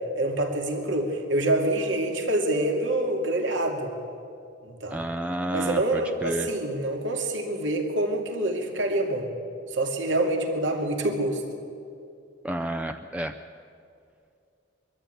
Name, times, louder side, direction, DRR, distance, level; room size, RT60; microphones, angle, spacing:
voice 1, 0.2-3.9 4.6-5.0 5.5-9.3 9.7-11.4, right 1 dB, 75° right, 2 dB, 2.5 m, -26 dB
voice 2, 4.9-6.5 12.4-13.3, right 1 dB, 5° right, 6 dB, 0.5 m, -30 dB
22.5 x 13.5 x 9.2 m, 2.5 s
head